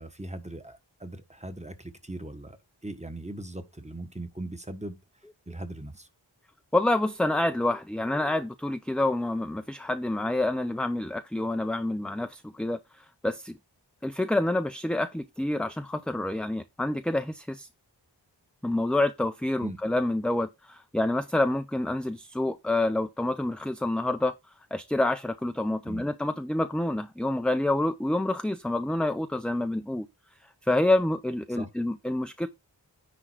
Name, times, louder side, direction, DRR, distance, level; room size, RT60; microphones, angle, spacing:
voice 1, 0.0-2.6 2.8-5.0 5.5-6.1 19.6-19.8 25.8-26.1 31.5-31.7, right 1 dB, 15° right, 1.3 m, -39 dB
voice 2, 6.7-12.8 13.2-13.6 14.0-17.7 18.6-24.3 24.7-30.1 30.6-32.5, left 1 dB, ahead, 0.5 m, -27 dB
9.9 x 3.7 x 4.6 m
wide cardioid pair, 50°, 44 cm